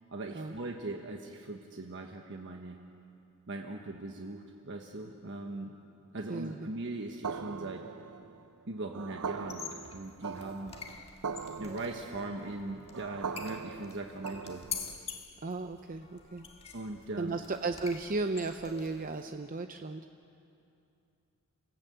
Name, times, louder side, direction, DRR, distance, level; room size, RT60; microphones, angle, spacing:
voice 1, 0.1-2.8 3.5-5.7 6.1-7.8 8.7-10.8 11.6-14.6 16.7-17.4, right 2 dB, 55° right, 2 dB, 1.3 m, -40 dB
voice 2, 6.3-6.7 15.4-16.5 17.2-20.1, right 3 dB, 40° right, 7 dB, 0.7 m, -35 dB
sound 1, 7.2-15.0, right 5 dB, 80° right, 0.6 m, -41 dB
sound 2, 9.4-19.2, left 6 dB, 25° left, 1.6 m, -46 dB
28.0 x 18.0 x 8.0 m, 2.7 s
head